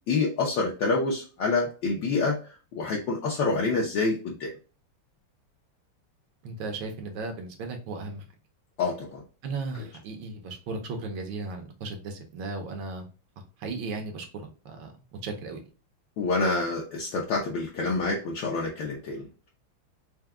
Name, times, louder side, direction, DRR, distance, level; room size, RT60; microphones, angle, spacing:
voice 1, 0.1-2.4 2.7-4.5 8.8-9.2 16.2-19.5, left 3 dB, 65° left, -3 dB, 1.4 m, -27 dB
voice 2, 6.4-8.2 9.4-13.1 13.6-14.3 14.6-15.6, right 3 dB, 70° right, 4 dB, 1.6 m, -36 dB
4.6 x 2.2 x 3.5 m, 0.35 s
omnidirectional pair, 2.3 m